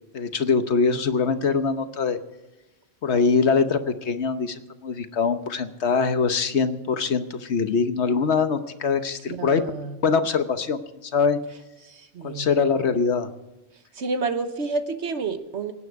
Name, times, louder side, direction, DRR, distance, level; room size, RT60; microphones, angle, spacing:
voice 1, 0.1-2.2 3.0-9.6 10.0-11.4 12.2-13.3, left 5 dB, 65° left, 9 dB, 1.3 m, -23 dB
voice 2, 9.3-10.0 11.8-12.5 13.9-15.7, right 4 dB, 65° right, 9 dB, 1.4 m, -29 dB
24.5 x 9.5 x 4.7 m, 1.1 s
omnidirectional pair, 1.2 m